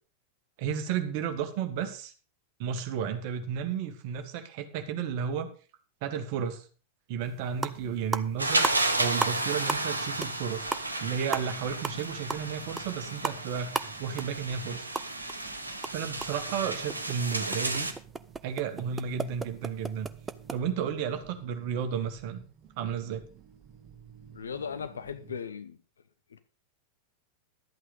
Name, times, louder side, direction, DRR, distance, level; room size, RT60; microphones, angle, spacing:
voice 1, 0.6-2.1 2.6-5.5 6.0-6.6 7.1-8.7 9.0-10.7 11.0-14.9 15.9-17.9 18.4-20.1 20.5-22.4 22.7-23.2, right 7 dB, 45° right, 1.7 m, -33 dB
sound 1, 7.2-7.3 7.5-7.8 8.1-9.4 9.7-9.9 10.2-10.4 10.7-15.4 15.7-20.6, right 4 dB, 15° right, 0.7 m, -35 dB
sound 2, 7.7-25.4, right 8 dB, 30° right, 2.0 m, -53 dB
sound 3, 8.4-17.9, right 2 dB, 80° right, 1.2 m, -32 dB
voice 2, 24.3-25.8 26.3-26.4, left 7 dB, 70° left, 1.1 m, -37 dB
12.0 x 8.5 x 5.2 m
figure-of-eight pair, 90°, 0 cm